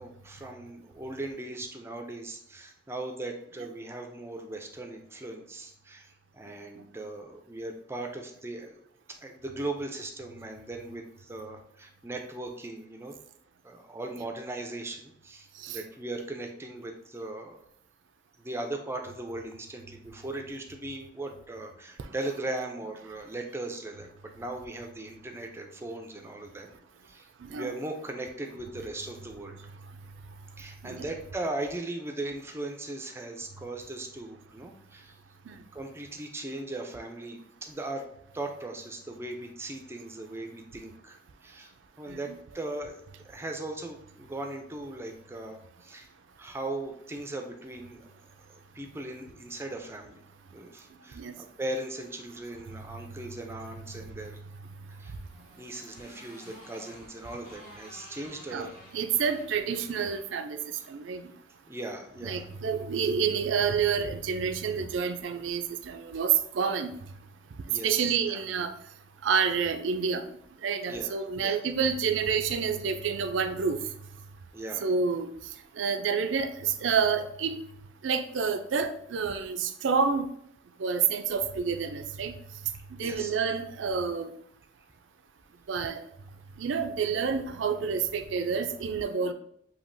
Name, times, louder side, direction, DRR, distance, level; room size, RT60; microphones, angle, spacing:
voice 1, 0.0-8.8 9.1-13.2 13.6-17.6 18.4-26.7 27.1-29.6 30.6-35.1 35.7-38.0 38.3-41.7 42.0-46.1 46.4-48.1 48.5-50.2 50.5-54.4 55.0-55.1 55.5-58.8 60.8-60.9 61.7-62.5 67.7-68.4 70.9-71.6 74.5-74.9 83.0-83.3, right 2 dB, 15° right, 4 dB, 0.4 m, -38 dB
Motorcycle, 54.9-61.3, equal, 50° left, 1.4 m, -53 dB
voice 2, 58.9-60.6 60.9-61.2 62.2-66.9 67.8-68.7 69.2-70.2 70.6-73.8 74.8-75.3 75.8-77.6 78.0-80.2 80.8-82.3 83.0-84.3 85.7-86.0 86.6-89.3, right 6 dB, 85° right, 9 dB, 0.4 m, -28 dB
7.0 x 2.8 x 2.6 m, 0.71 s
head